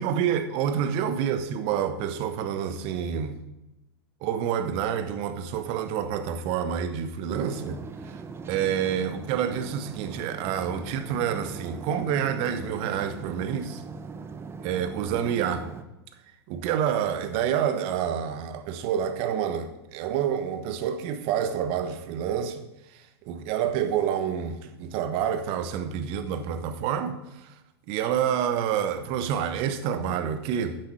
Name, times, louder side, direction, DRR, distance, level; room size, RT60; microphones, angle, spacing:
voice 1, 0.0-3.4 4.2-8.1 8.5-13.8 14.6-15.7 16.5-22.6 23.2-27.5 27.9-30.8, right 8 dB, 45° right, 1.1 m, -28 dB
sound 1, 7.4-15.8, right 5 dB, 20° right, 0.8 m, -40 dB
9.5 x 7.7 x 5.6 m
figure-of-eight pair, 95°, 14 cm